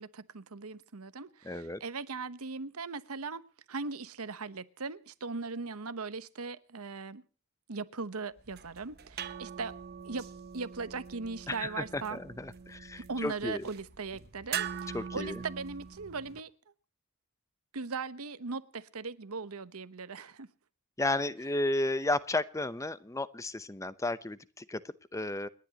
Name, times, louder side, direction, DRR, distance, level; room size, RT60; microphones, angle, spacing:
voice 1, 0.0-7.2 7.7-9.7 10.0-12.2 13.0-16.5 17.7-20.5, right 4 dB, 80° right, 1.0 m, -39 dB
voice 2, 1.4-1.8 11.5-13.6 14.9-15.4 21.0-25.5, left 2 dB, 15° left, 0.7 m, -33 dB
sound 1, 8.4-16.4, right 8 dB, 45° right, 1.0 m, -42 dB
29.0 x 11.0 x 2.9 m
head